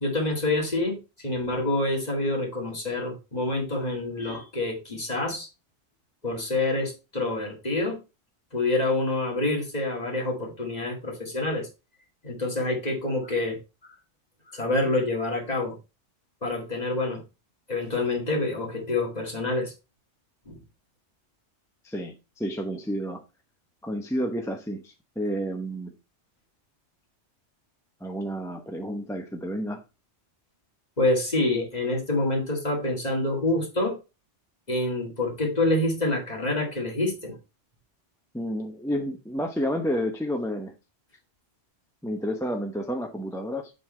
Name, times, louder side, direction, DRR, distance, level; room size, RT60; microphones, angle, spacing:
voice 1, 0.0-5.5 6.2-8.0 8.5-11.7 12.2-13.9 14.5-15.8 16.4-17.2 17.7-19.7 20.5-20.6 31.0-34.0 34.7-37.4, left 2 dB, 35° left, 2.1 m, -27 dB
voice 2, 21.8-23.2 23.8-25.9 28.0-29.8 38.3-40.7 42.0-43.7, equal, 5° left, 0.7 m, -30 dB
7.5 x 4.0 x 4.3 m
omnidirectional pair, 1.2 m